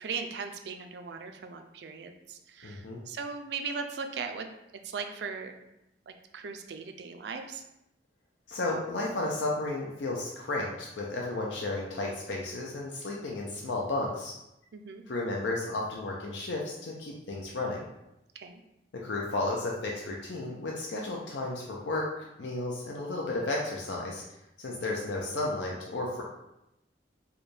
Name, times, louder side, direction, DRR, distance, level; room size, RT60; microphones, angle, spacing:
voice 1, 0.0-4.5 4.8-5.6 6.1-7.6 14.7-15.0 18.3-18.6, right 5 dB, 65° right, 6 dB, 0.4 m, -38 dB
voice 2, 2.6-3.0 8.5-14.3 15.1-17.9 18.9-22.1 22.4-24.2 24.6-26.2, left 2 dB, 85° left, -2 dB, 0.5 m, -33 dB
4.6 x 2.3 x 3.2 m, 0.88 s
head